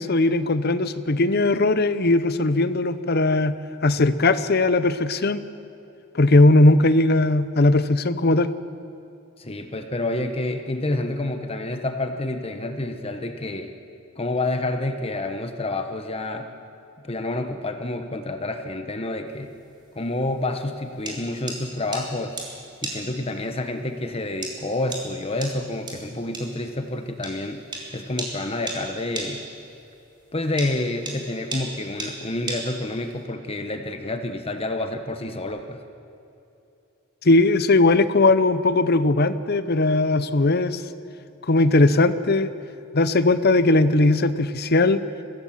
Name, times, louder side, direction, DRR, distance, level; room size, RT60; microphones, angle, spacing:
voice 1, 0.0-3.5 3.8-5.4 6.1-8.5 37.2-40.8 41.4-42.5 42.9-45.0, left 2 dB, 50° left, 13 dB, 0.8 m, -19 dB
voice 2, 9.4-13.7 14.2-16.5 17.0-19.5 19.9-22.4 22.8-27.6 27.9-29.4 30.3-35.8, left 2 dB, 25° left, 6 dB, 1.0 m, -28 dB
sound 1, 19.3-33.2, right 2 dB, 20° right, 3.6 m, -36 dB
23.5 x 16.5 x 7.4 m, 2.8 s
head